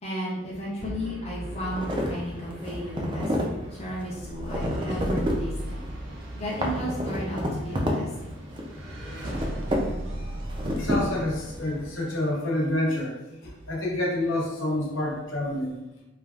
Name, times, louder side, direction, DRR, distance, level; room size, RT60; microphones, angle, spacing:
voice 1, 0.0-3.4 3.8-5.8 6.4-8.3, equal, 30° left, -6 dB, 0.6 m, -34 dB
sound 1, 0.8-12.1, right 1 dB, 75° right, 0.6 m, -38 dB
sound 2, 1.4-11.9, equal, 25° right, 0.3 m, -31 dB
voice 2, 10.7-13.1 13.4-15.8, left 1 dB, 70° left, -3 dB, 0.7 m, -28 dB
3.2 x 2.3 x 2.3 m, 0.96 s
head